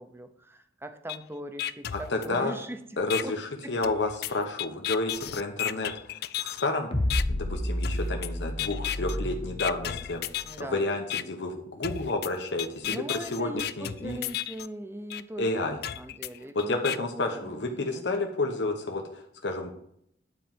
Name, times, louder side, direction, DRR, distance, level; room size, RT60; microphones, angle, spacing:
voice 1, 0.0-3.8 10.4-10.9 12.8-18.3, right 1 dB, 15° right, 8 dB, 0.8 m, -41 dB
sound 1, 1.1-1.2 1.6-2.6 3.1-3.2 3.8-6.7 7.1-7.2 7.8-8.3 8.6-9.2 9.6-10.6 11.1-11.2 11.8-14.7 15.1-15.2 15.8-17.0, left 11 dB, 60° left, 0.4 m, -33 dB
voice 2, 1.9-2.5 3.0-6.9 7.3-10.2 10.6-13.0 13.3-14.2 15.4-15.8 16.7-19.7, left 2 dB, 85° left, 3 dB, 1.1 m, -30 dB
sound 2, 6.9-10.3, left 1 dB, 35° left, 1.1 m, -30 dB
9.8 x 4.6 x 7.3 m, 0.69 s
head